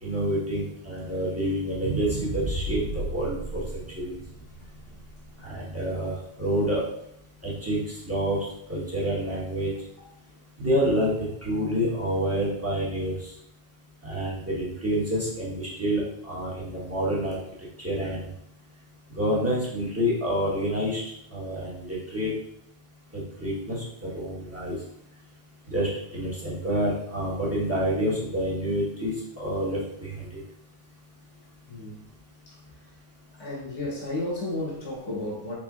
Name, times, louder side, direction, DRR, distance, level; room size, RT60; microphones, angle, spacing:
voice 1, 0.0-4.2 5.4-6.8 7.4-9.7 10.6-11.2 11.4-13.3 14.0-17.4 17.8-18.3 19.1-22.3 23.1-23.8 24.1-24.8 25.7-30.3, equal, 15° right, -7 dB, 1.1 m, -28 dB
sound 1, 1.7-5.9 6.4-6.5, right 2 dB, 90° right, 0.9 m, -34 dB
voice 2, 31.7-32.0 33.4-35.5, left 1 dB, 25° left, -4 dB, 1.0 m, -32 dB
4.2 x 3.9 x 2.4 m, 0.76 s
omnidirectional pair, 1.1 m